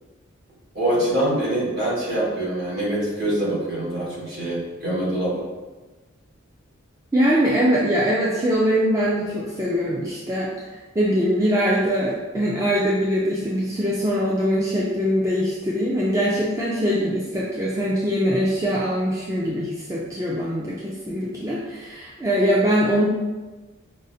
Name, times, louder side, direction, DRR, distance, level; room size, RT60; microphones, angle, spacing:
voice 1, 0.7-5.4, right 1 dB, 50° right, -7 dB, 1.3 m, -24 dB
voice 2, 7.1-10.5 11.0-23.1, equal, 15° right, -6 dB, 0.3 m, -22 dB
5.2 x 2.0 x 2.6 m, 1.2 s
head